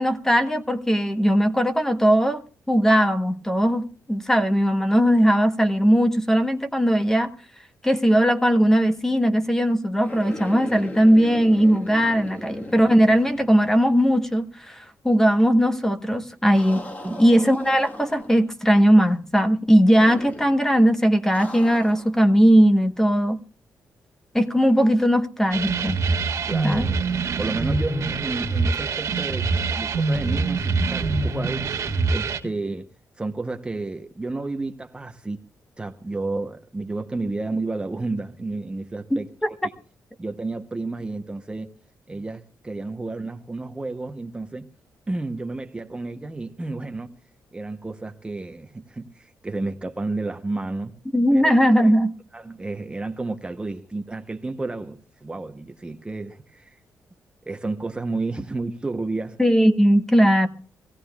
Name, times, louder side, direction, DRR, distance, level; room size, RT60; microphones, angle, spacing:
voice 1, 0.0-2.4 2.7-7.3 7.8-16.8 17.2-23.4 24.3-26.0 26.6-26.9 39.4-39.5 51.1-52.1 59.4-60.5, equal, 5° left, 1.0 m, -19 dB
sound 1, 10.0-14.1 14.4-14.5 16.5-18.5 20.0-20.6 21.3-22.2, left 1 dB, 25° left, 1.4 m, -38 dB
sound 2, 25.5-32.4, right 4 dB, 55° right, 1.8 m, -24 dB
voice 2, 26.5-27.1 27.4-32.9 33.2-35.4 35.8-39.7 40.2-41.7 42.1-44.7 45.1-47.2 47.5-51.0 51.3-51.9 52.3-56.8 57.5-59.4, right 3 dB, 15° right, 0.8 m, -31 dB
25.0 x 16.0 x 2.3 m
wide cardioid pair, 140°, 6 cm